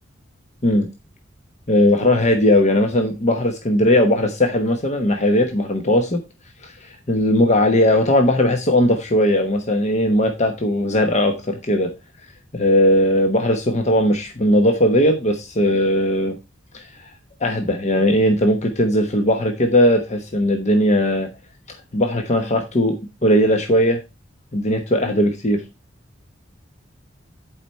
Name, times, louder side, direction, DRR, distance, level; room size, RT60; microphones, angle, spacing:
voice 1, 1.7-6.2 6.6-11.9 12.5-16.4 16.7-17.1 17.4-21.3 21.9-24.0 24.5-25.6, left 1 dB, 40° left, 1.1 m, -18 dB
11.0 x 5.0 x 4.3 m
head